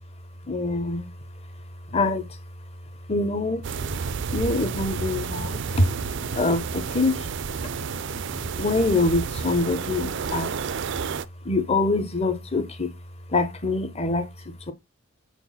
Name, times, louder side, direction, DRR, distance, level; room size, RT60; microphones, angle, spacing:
voice 1, 0.4-1.2 1.9-2.4 3.1-3.7 4.3-5.9 6.3-7.3 7.6-7.7 8.6-10.7 11.4-13.0 13.3-14.7, left 2 dB, 30° left, 0.9 m, -25 dB
sound 1, 3.6-11.3, right 5 dB, 60° right, 0.4 m, -30 dB
4.6 x 4.5 x 5.6 m
head